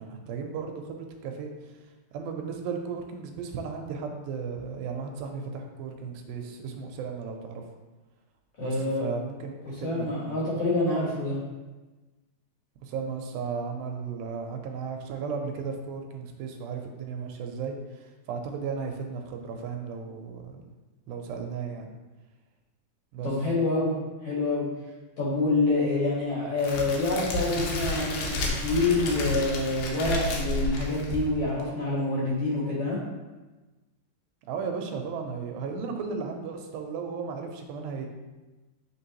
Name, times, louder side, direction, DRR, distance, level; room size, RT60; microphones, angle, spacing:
voice 1, 0.0-1.8 2.1-7.6 8.6-10.5 12.8-20.6 21.1-22.0 23.1-23.3 34.5-38.1, right 5 dB, 85° right, 3 dB, 2.4 m, -35 dB
voice 2, 8.6-9.1 9.8-11.4 23.2-23.9 24.2-24.7 25.2-33.0, left 2 dB, 55° left, -6 dB, 1.9 m, -27 dB
Crackle, 26.6-31.6, left 1 dB, 80° left, 2.6 m, -31 dB
8.6 x 3.7 x 2.9 m, 1.2 s
omnidirectional pair, 4.2 m